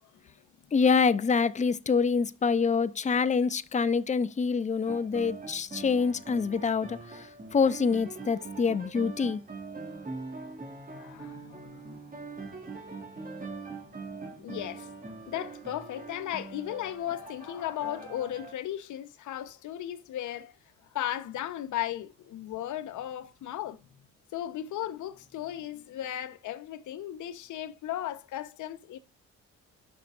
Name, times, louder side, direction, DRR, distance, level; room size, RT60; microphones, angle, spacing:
voice 1, 0.7-9.4, left 5 dB, 25° left, 0.6 m, -26 dB
sound 1, 4.9-18.5, right 3 dB, 30° right, 2.3 m, -43 dB
voice 2, 10.9-12.0 14.0-14.9 15.3-20.6 20.9-24.0 24.3-29.0, left 12 dB, 75° left, 1.1 m, -36 dB
12.5 x 6.0 x 2.5 m
cardioid pair, 90°, 30 cm